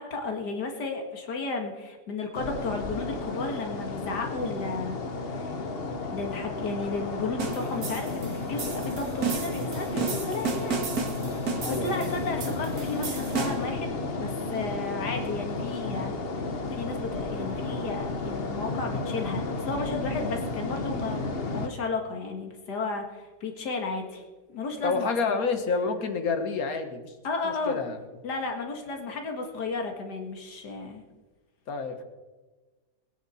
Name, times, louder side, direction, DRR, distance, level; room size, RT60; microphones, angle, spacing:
voice 1, 0.0-5.0 5.3-5.6 6.0-10.8 11.7-16.2 16.7-24.2 24.5-25.4 27.2-27.8 28.2-31.0, left 3 dB, 90° left, 4 dB, 2.3 m, -33 dB
sound 1, 2.3-21.7, left 3 dB, 40° left, 1.1 m, -33 dB
sound 2, 7.4-13.8, right 5 dB, 65° right, 2.2 m, -33 dB
voice 2, 11.6-12.1 24.8-27.1 27.4-28.0 31.7-32.0, left 4 dB, 60° left, 6 dB, 1.9 m, -29 dB
20.5 x 10.5 x 4.3 m, 1.2 s
omnidirectional pair, 1.7 m